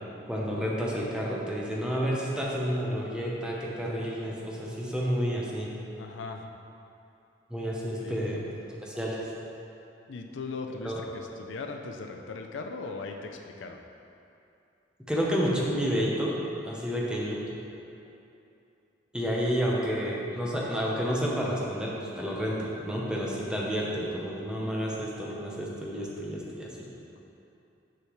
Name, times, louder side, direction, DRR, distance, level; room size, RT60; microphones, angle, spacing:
voice 1, 0.3-5.7 7.5-8.4 8.8-9.3 10.8-10.9 15.1-16.4 16.6-17.4 19.1-26.7, equal, 5° right, -4 dB, 0.8 m, -30 dB
voice 2, 6.0-6.5 7.9-8.3 10.1-13.8 16.9-17.2, left 3 dB, 85° left, 3 dB, 0.5 m, -39 dB
6.6 x 5.7 x 3.1 m, 2.7 s
head